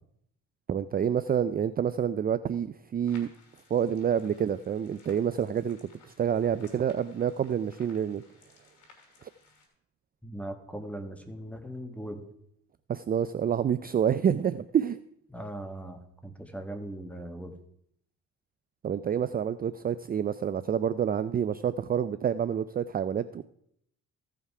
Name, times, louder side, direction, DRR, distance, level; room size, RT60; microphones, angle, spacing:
voice 1, 0.7-3.3 3.7-5.8 6.2-8.2 12.9-15.0 18.8-23.4, right 8 dB, 30° right, 14 dB, 0.4 m, -28 dB
sound 1, 3.1-9.7, left 4 dB, 85° left, 3.0 m, -59 dB
voice 2, 10.2-12.2 15.3-17.6, right 1 dB, 5° left, 6 dB, 1.6 m, -39 dB
15.5 x 5.7 x 4.8 m, 0.72 s
cardioid pair, 90°, 30 cm